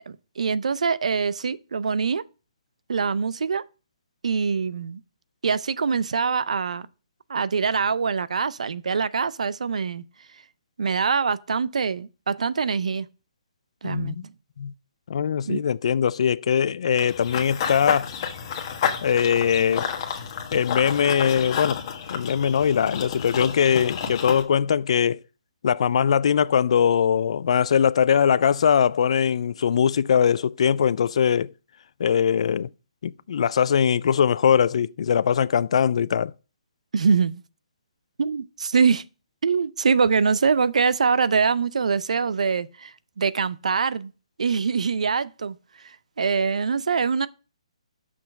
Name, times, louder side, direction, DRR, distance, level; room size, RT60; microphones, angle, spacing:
voice 1, 0.1-2.2 2.9-3.6 4.2-5.0 5.4-6.9 7.3-10.0 10.8-13.1 13.8-14.3 15.5-15.7 36.9-37.4 38.2-39.0 39.4-44.1 44.4-45.6 45.8-47.3, right 5 dB, 75° right, 0.5 m, -24 dB
voice 2, 13.8-14.2 14.6-14.7 15.1-18.1 19.0-19.9 20.5-21.8 22.1-25.2 25.6-31.5 32.0-32.7 33.0-36.3, left 8 dB, 60° left, 0.3 m, -21 dB
Run / Bird vocalization bird call bird song, 17.0-24.4, left 7 dB, 40° left, 1.3 m, -30 dB
6.2 x 5.8 x 5.1 m
hypercardioid pair, 150°, 4 cm